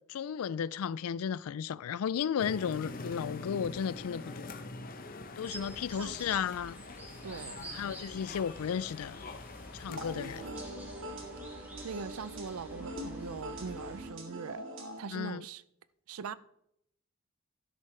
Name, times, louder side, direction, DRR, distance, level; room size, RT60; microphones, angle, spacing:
voice 1, 0.1-4.5 5.4-6.8 7.7-9.2 9.7-10.5 15.1-15.4, left 7 dB, 80° left, 0.4 m, -34 dB
sound 1, 2.4-10.5, left 2 dB, 40° left, 0.8 m, -45 dB
sound 2, 5.4-14.1, right 1 dB, 10° right, 2.3 m, -49 dB
voice 2, 7.2-7.7 11.8-14.7 15.0-15.6 16.1-16.3, right 5 dB, 80° right, 0.5 m, -41 dB
sound 3, 9.9-15.0, right 1 dB, 60° right, 2.0 m, -43 dB
12.0 x 11.0 x 3.3 m
head